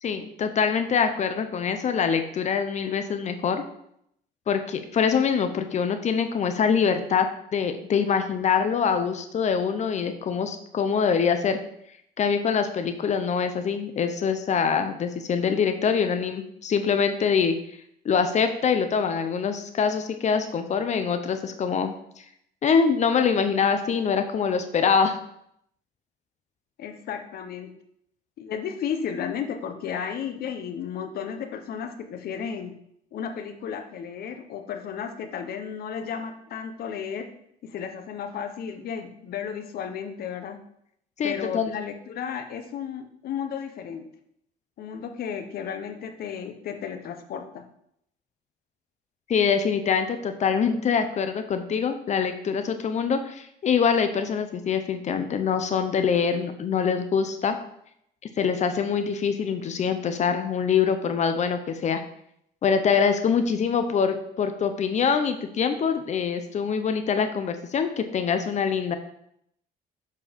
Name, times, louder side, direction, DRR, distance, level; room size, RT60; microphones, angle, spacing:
voice 1, 0.0-3.6 4.5-7.3 7.5-11.6 12.2-17.6 18.0-21.9 22.6-25.2 41.2-41.7 49.3-57.6 58.4-62.0 62.6-69.0, left 6 dB, 45° left, 8 dB, 0.7 m, -24 dB
voice 2, 26.8-27.7 28.4-32.7 33.1-37.3 37.6-40.6 41.2-44.0 44.8-47.6, left 7 dB, 65° left, 7 dB, 1.1 m, -33 dB
7.3 x 4.6 x 5.3 m, 0.73 s
cardioid pair, 110°, 17 cm